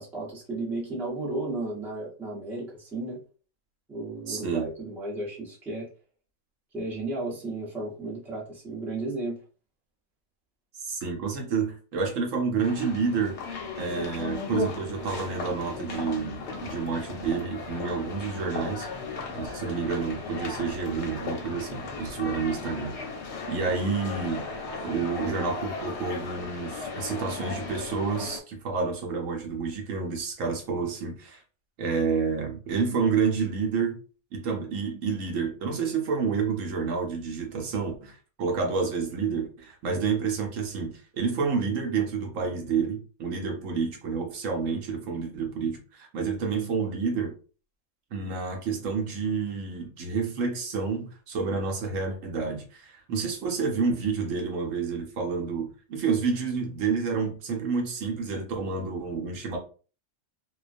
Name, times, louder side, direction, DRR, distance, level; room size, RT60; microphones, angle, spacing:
voice 1, 0.0-3.2 3.9-5.9 6.7-9.4 39.9-40.0, right 2 dB, ahead, 0.6 m, -34 dB
voice 2, 4.3-4.7 10.8-13.4 13.8-18.9 19.3-23.0 23.5-24.5 24.8-31.4 31.8-34.0 34.3-47.4 48.1-59.6, right 5 dB, 75° right, 1.0 m, -29 dB
sound 1, 12.6-28.4, left 3 dB, 65° left, 0.8 m, -36 dB
2.4 x 2.2 x 2.5 m
omnidirectional pair, 1.4 m